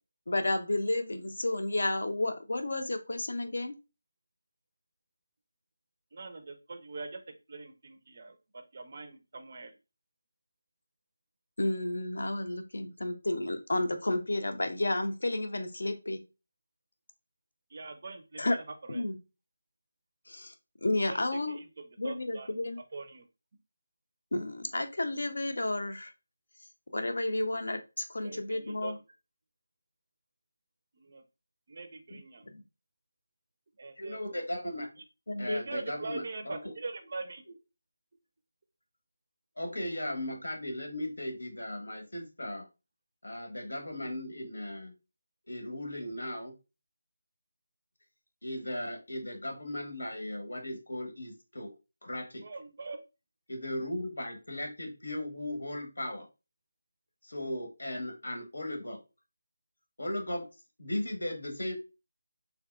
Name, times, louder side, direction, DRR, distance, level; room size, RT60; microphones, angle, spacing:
voice 1, 0.3-3.7 11.6-16.2 18.4-18.6 18.9-19.2 20.3-20.5 20.8-21.6 22.0-22.8 24.3-26.1 26.9-29.0 32.1-32.2 32.5-32.6 35.3-35.6, left 2 dB, 65° left, 7 dB, 0.6 m, -31 dB
voice 2, 6.1-7.2 7.5-9.7 17.7-18.6 18.9-19.0 21.1-21.7 22.0-22.5 22.9-23.2 28.2-29.0 31.0-31.2 31.7-32.5 33.8-34.2 35.4-37.4 52.4-53.0, right 3 dB, 30° right, 7 dB, 0.4 m, -42 dB
voice 3, 34.0-34.9 35.4-36.8 39.6-42.7 43.2-44.9 45.5-46.5 48.4-51.7 52.0-52.4 53.5-56.3 57.2-59.0 60.0-60.5 60.8-61.7, left 1 dB, 90° left, 3 dB, 1.1 m, -37 dB
3.4 x 2.8 x 2.3 m, 0.28 s
figure-of-eight pair, 180°, 0 cm